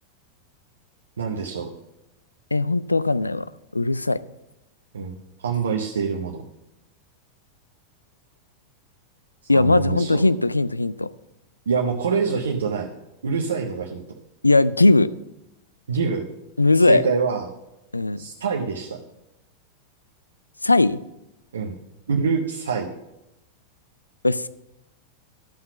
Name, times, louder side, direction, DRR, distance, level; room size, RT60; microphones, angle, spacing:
voice 1, 1.2-1.7 4.9-5.2 5.4-6.4 9.5-10.2 11.7-12.9 13.2-14.0 15.9-16.3 16.9-17.5 18.2-19.0 21.5-21.7 22.1-22.9, right 5 dB, 70° right, 1 dB, 0.9 m, -25 dB
voice 2, 2.5-3.5 3.7-4.2 9.5-11.1 14.4-15.1 16.6-17.0 17.9-18.2 20.6-21.0 24.2-24.5, left 2 dB, 80° left, 16 dB, 0.4 m, -18 dB
11.5 x 5.7 x 5.8 m, 0.91 s
figure-of-eight pair, 90°, 0 cm